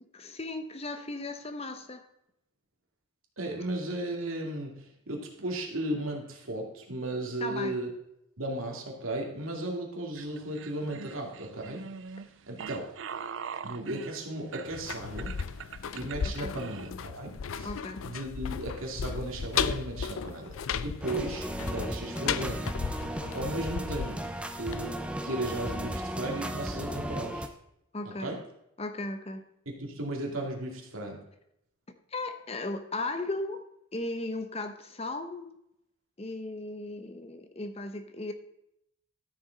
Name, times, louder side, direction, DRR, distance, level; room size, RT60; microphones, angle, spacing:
voice 1, 0.1-2.0 7.4-7.8 16.4-16.5 17.6-18.0 27.9-28.3 28.8-29.4 32.1-33.6 33.9-35.6 36.2-38.3, left 2 dB, 30° left, 8 dB, 0.8 m, -36 dB
voice 2, 3.4-7.9 8.4-11.9 12.5-12.8 13.6-15.4 15.9-17.7 18.0-22.6 23.3-24.2 24.6-25.0 25.2-27.5 28.0-28.4 29.7-31.2, right 1 dB, 85° right, 0 dB, 2.4 m, -35 dB
sound 1, 10.1-16.9, right 6 dB, 65° right, 0.4 m, -42 dB
sound 2, 14.7-25.5 25.8-25.9, left 6 dB, 85° left, 0.4 m, -35 dB
sound 3, 21.0-27.5, right 1 dB, 5° right, 0.6 m, -35 dB
13.0 x 6.8 x 4.0 m, 0.79 s
head